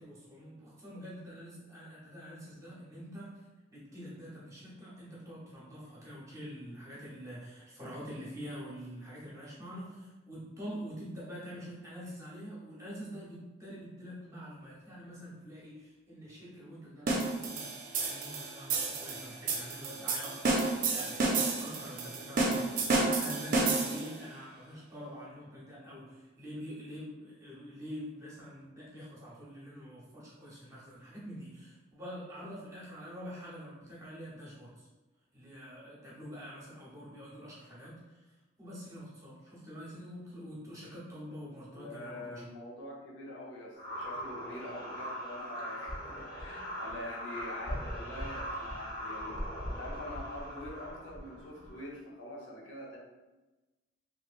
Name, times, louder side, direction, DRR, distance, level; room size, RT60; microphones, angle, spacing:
voice 1, 0.0-3.4 3.7-34.9 35.3-38.0 38.6-42.4, equal, 15° right, -7 dB, 1.0 m, -46 dB
sound 1, 17.1-24.2, right 3 dB, 45° right, 0.5 m, -31 dB
voice 2, 41.7-53.0, left 1 dB, 80° left, -3 dB, 0.8 m, -45 dB
sound 2, 43.8-51.8, equal, 50° left, 0.8 m, -40 dB
3.2 x 3.0 x 2.5 m, 1.1 s
head